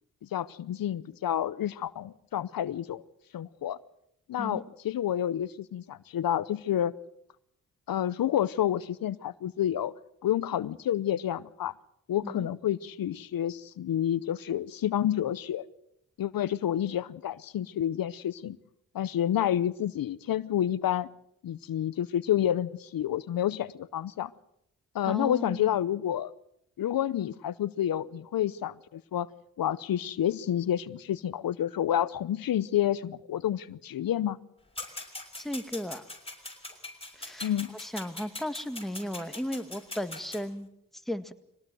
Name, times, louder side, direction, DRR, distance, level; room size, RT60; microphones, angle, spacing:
voice 1, 0.3-3.0 3.3-3.8 4.3-6.9 7.9-9.9 10.2-11.7 12.1-15.7 16.2-18.6 18.9-21.1 21.4-24.3 24.9-26.3 26.8-29.3 29.6-34.4 37.4-37.7, left 11 dB, 75° left, 17 dB, 0.8 m, -29 dB
voice 2, 25.1-25.8 35.4-36.1 37.1-40.7 41.1-41.3, equal, ahead, 8 dB, 1.9 m, -35 dB
sound 1, 34.8-40.4, left 2 dB, 15° left, 5.9 m, -42 dB
23.0 x 18.0 x 7.8 m, 0.76 s
cardioid pair, 50°, 35 cm